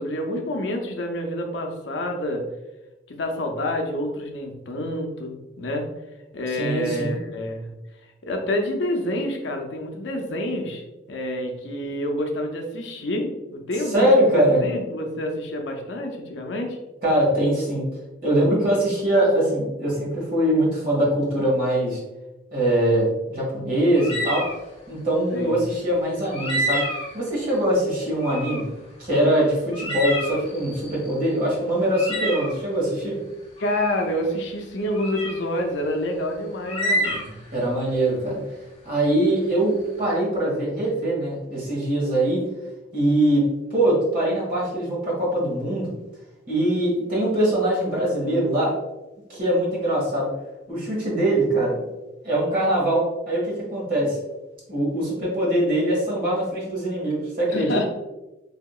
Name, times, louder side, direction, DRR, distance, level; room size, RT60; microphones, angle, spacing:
voice 1, 0.0-2.4 3.1-5.9 6.3-7.7 8.2-10.8 11.1-16.8 25.3-25.6 33.6-37.3 57.5-57.9, left 1 dB, 70° left, 3 dB, 0.5 m, -28 dB
voice 2, 6.6-7.2 13.9-14.7 17.0-17.8 18.2-22.0 22.5-24.4 24.9-26.8 27.1-28.7 29.0-33.2 37.5-38.4 38.8-42.4 42.9-43.4 43.7-45.9 46.5-48.7 49.3-50.3 50.7-51.8 52.2-54.2 54.7-57.8, right 1 dB, 50° right, -5 dB, 1.4 m, -22 dB
sound 1, 24.0-24.6 26.3-27.2 28.2-28.6 29.0-29.1 29.7-31.1 31.9-32.6 33.6-34.1 34.9-35.4 36.6-37.5, equal, 30° left, 0.7 m, -28 dB
3.4 x 2.8 x 2.3 m, 1.0 s
head